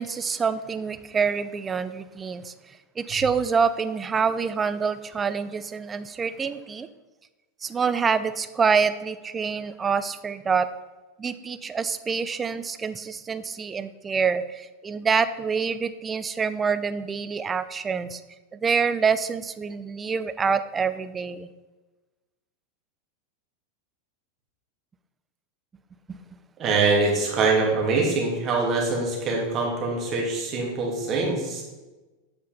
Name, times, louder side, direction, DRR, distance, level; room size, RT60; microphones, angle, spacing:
voice 1, 0.0-2.5 3.0-6.9 7.6-10.7 11.2-18.2 18.5-21.5 26.1-26.2, right 5 dB, 20° right, 13 dB, 0.5 m, -26 dB
voice 2, 26.6-31.6, right 3 dB, 35° right, -1 dB, 2.9 m, -24 dB
8.8 x 5.6 x 5.4 m, 1.2 s
hypercardioid pair, 120°, 0 cm